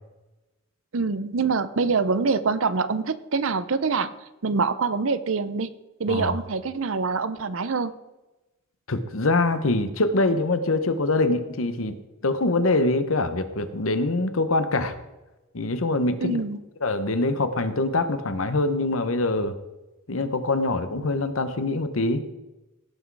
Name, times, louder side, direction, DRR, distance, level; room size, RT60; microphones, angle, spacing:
voice 1, 0.9-4.1 4.4-5.7 6.0-7.9 16.2-16.6, right 4 dB, 70° right, 14 dB, 0.7 m, -25 dB
voice 2, 8.9-12.0 12.2-14.9 15.5-16.4 16.8-19.5 20.1-22.2, left 2 dB, 70° left, 11 dB, 1.0 m, -24 dB
16.5 x 6.2 x 4.7 m, 1.0 s
head